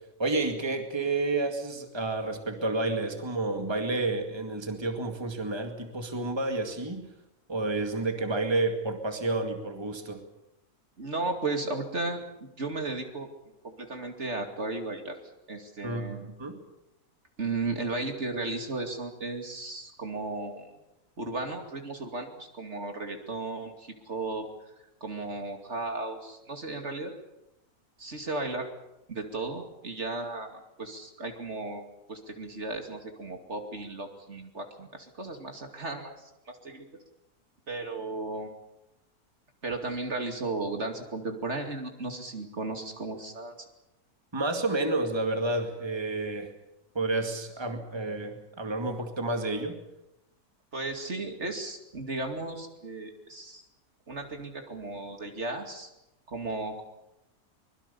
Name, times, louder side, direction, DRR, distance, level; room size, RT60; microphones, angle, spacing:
voice 1, 0.2-7.1 7.5-10.2 15.8-16.6 44.3-46.5 46.9-49.8, right 2 dB, 15° right, 4 dB, 2.2 m, -30 dB
voice 2, 11.0-12.2 12.6-13.3 13.6-15.2 15.5-16.3 17.4-20.7 21.2-24.7 25.0-27.1 28.0-28.7 29.1-36.9 37.7-38.5 39.6-43.5 50.7-53.6 54.1-55.9 56.3-56.8, right 2 dB, 45° right, 4 dB, 2.7 m, -35 dB
24.0 x 22.0 x 7.0 m, 0.90 s
omnidirectional pair, 1.6 m